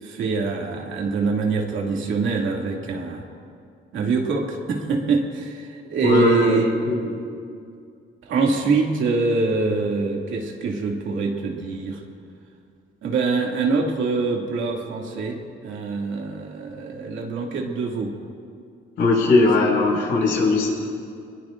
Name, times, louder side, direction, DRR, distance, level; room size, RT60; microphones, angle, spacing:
voice 1, 0.0-3.3 3.9-6.7 8.2-12.0 13.0-18.1, right 4 dB, 75° right, 0 dB, 2.4 m, -24 dB
voice 2, 6.0-7.0 19.0-20.7, left 3 dB, 80° left, -2 dB, 5.3 m, -19 dB
24.0 x 21.0 x 2.6 m, 2.3 s
cardioid pair, 90°, 20 cm